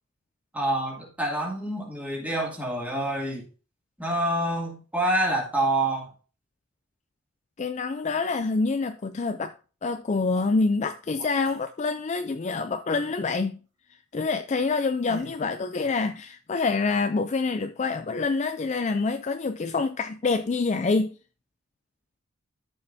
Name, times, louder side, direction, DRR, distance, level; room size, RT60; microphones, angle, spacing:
voice 1, 0.5-3.4 4.0-6.1, right 1 dB, 5° right, 2.3 m, -27 dB
voice 2, 7.6-9.5 9.8-13.6 14.1-21.1, left 4 dB, 30° left, 0.4 m, -26 dB
sound 1, 10.3-10.5 11.2-12.0 15.1-15.5, right 2 dB, 35° right, 3.4 m, -44 dB
13.5 x 5.6 x 2.7 m
head